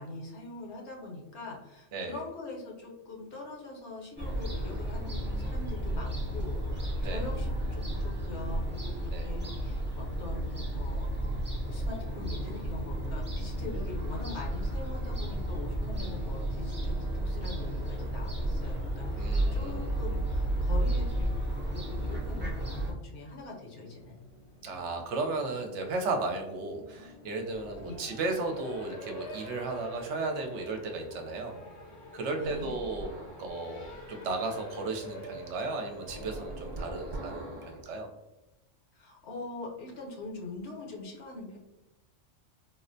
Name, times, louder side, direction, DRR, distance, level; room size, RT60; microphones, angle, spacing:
voice 1, 0.0-11.2 11.7-21.3 21.7-24.2 27.8-28.0 32.3-32.7 38.9-41.6, left 2 dB, 65° left, -1 dB, 1.0 m, -43 dB
Fowl / Gull seagull, 4.2-22.9, right 1 dB, 15° right, 0.4 m, -32 dB
voice 2, 19.2-19.9 24.6-31.6 32.1-33.1 33.4-38.1, right 3 dB, 75° right, 4 dB, 0.9 m, -35 dB
Race car auto racing, 23.9-37.9, left 1 dB, 85° left, 1.1 m, -47 dB
sound 1, 32.4-33.5 36.1-37.8, right 2 dB, 45° right, 1.0 m, -41 dB
4.1 x 2.1 x 2.6 m, 1.0 s
omnidirectional pair, 1.3 m